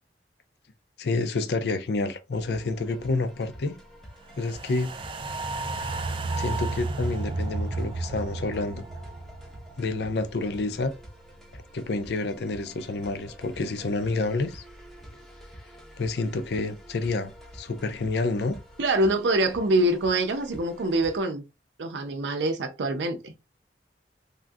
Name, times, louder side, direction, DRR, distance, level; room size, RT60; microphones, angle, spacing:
voice 1, 1.0-3.8 4.4-4.9 6.4-8.9 9.8-10.9 11.5-14.6 16.0-18.6, left 3 dB, 70° left, 0.5 m, -29 dB
sound 1, 2.3-21.2, equal, ahead, 0.7 m, -48 dB
sound 2, 4.4-10.8 11.1-11.2, right 2 dB, 30° right, 0.3 m, -32 dB
voice 2, 18.8-21.4 21.8-23.3, right 1 dB, 90° right, 0.5 m, -25 dB
3.5 x 2.3 x 2.6 m
head